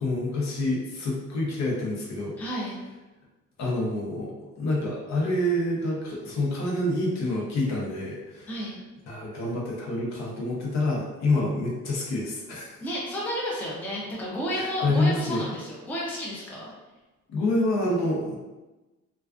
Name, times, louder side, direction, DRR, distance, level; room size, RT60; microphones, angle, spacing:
voice 1, 0.0-2.3 3.6-4.3 4.6-8.5 9.1-12.8 14.5-15.5 17.3-18.4, left 1 dB, 65° left, -3 dB, 0.8 m, -27 dB
voice 2, 2.4-2.7 8.5-8.8 12.8-16.7, equal, 5° left, -5 dB, 0.4 m, -32 dB
2.3 x 2.3 x 2.3 m, 1.1 s
cardioid pair, 145°, 29 cm